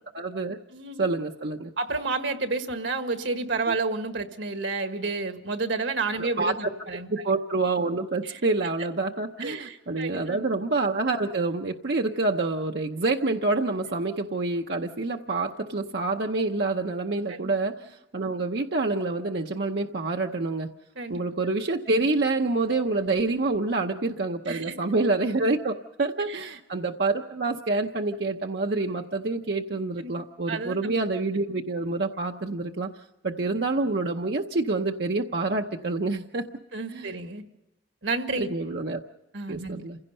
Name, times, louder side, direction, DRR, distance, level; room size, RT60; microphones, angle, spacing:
voice 1, 0.1-0.6 1.0-1.7 3.7-3.8 6.2-6.7 7.1-20.7 21.1-32.9 33.2-36.4 36.9-37.1 38.4-39.0 39.5-40.0, right 3 dB, 60° right, 3 dB, 0.8 m, -27 dB
voice 2, 0.7-1.1 1.8-7.2 8.2-8.4 9.4-10.5 17.3-17.5 20.9-21.2 24.5-24.7 26.2-26.6 30.0-30.1 30.5-30.8 36.7-37.4 38.0-38.5 39.3-39.8, right 3 dB, 85° right, 7 dB, 1.5 m, -30 dB
28.5 x 16.5 x 5.5 m, 0.93 s
head